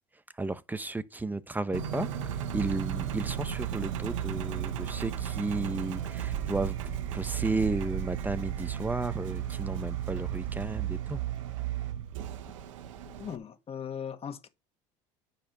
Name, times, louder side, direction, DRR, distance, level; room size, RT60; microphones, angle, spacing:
voice 1, 0.4-2.1 2.5-6.8 7.1-11.2, right 3 dB, 10° right, 0.9 m, -33 dB
Engine, 1.7-13.4, right 10 dB, 90° right, 1.0 m, -34 dB
sound 1, 6.3-11.8, right 7 dB, 30° right, 2.4 m, -43 dB
voice 2, 13.1-14.5, left 8 dB, 40° left, 1.8 m, -39 dB
10.0 x 4.4 x 6.7 m
supercardioid pair, 85°, 16 cm